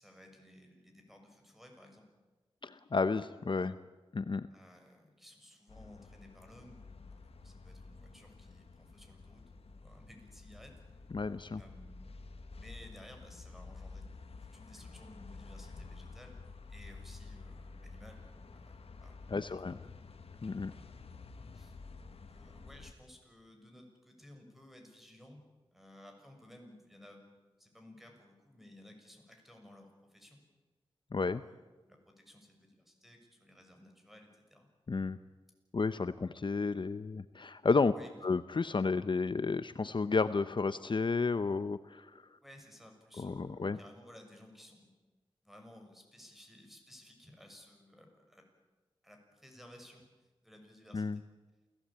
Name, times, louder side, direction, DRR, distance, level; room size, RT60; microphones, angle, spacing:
voice 1, 0.0-2.1 4.5-10.8 11.6-12.1 12.5-14.1 14.4-16.4 16.7-19.8 21.5-21.7 22.1-25.5 25.7-27.3 27.6-30.4 31.4-34.7 37.9-38.1 42.4-44.9 45.4-48.5 49.0-51.2, left 1 dB, ahead, 4 dB, 6.4 m, -57 dB
voice 2, 2.6-3.8 4.1-4.5 11.1-11.6 19.3-19.8 20.4-20.7 31.1-31.4 34.9-35.2 35.7-37.9 38.2-42.3 43.2-43.8 50.9-51.2, left 4 dB, 55° left, 13 dB, 0.8 m, -32 dB
sound 1, 5.7-22.9, left 3 dB, 90° left, 1.6 m, -51 dB
28.5 x 16.5 x 8.8 m, 1.2 s
wide cardioid pair, 65°, 10 cm